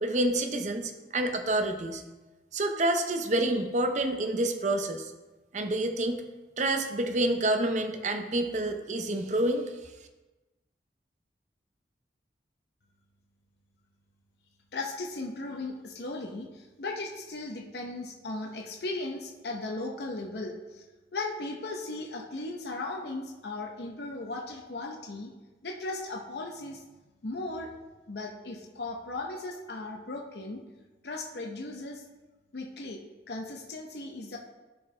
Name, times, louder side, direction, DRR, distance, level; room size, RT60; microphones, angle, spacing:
voice 1, 0.0-2.0 2.5-5.1 5.5-6.2 6.6-9.7, right 1 dB, 40° right, 6 dB, 0.6 m, -28 dB
voice 2, 14.7-20.8 21.1-25.3 25.6-26.8 27.2-27.7 28.1-30.6 31.0-32.0 32.5-33.0 33.3-34.4, left 2 dB, 65° left, 1 dB, 0.7 m, -37 dB
11.0 x 4.5 x 3.2 m, 1.2 s
head